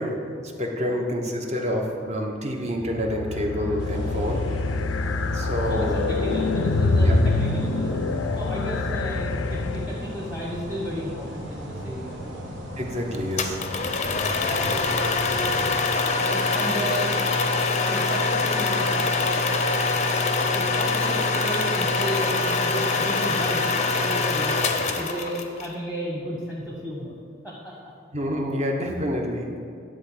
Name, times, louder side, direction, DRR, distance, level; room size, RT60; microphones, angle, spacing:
voice 1, 0.0-4.5 5.3-5.9 7.0-7.2 12.8-13.6 28.1-29.5, equal, 35° right, 2 dB, 1.0 m, -28 dB
sound 1, 2.8-10.2, left 3 dB, 85° left, 0.5 m, -25 dB
sound 2, 3.8-15.8, left 1 dB, 65° right, 1.5 m, -36 dB
voice 2, 5.6-8.0 8.3-12.3 14.4-15.1 15.4-17.2 17.6-19.5 20.0-20.2 20.5-24.7 24.9-27.1 27.4-27.9, equal, 5° right, -4 dB, 1.1 m, -33 dB
sound 3, 13.4-25.7, left 3 dB, 35° left, 0.6 m, -24 dB
10.5 x 3.8 x 7.3 m, 2.4 s
head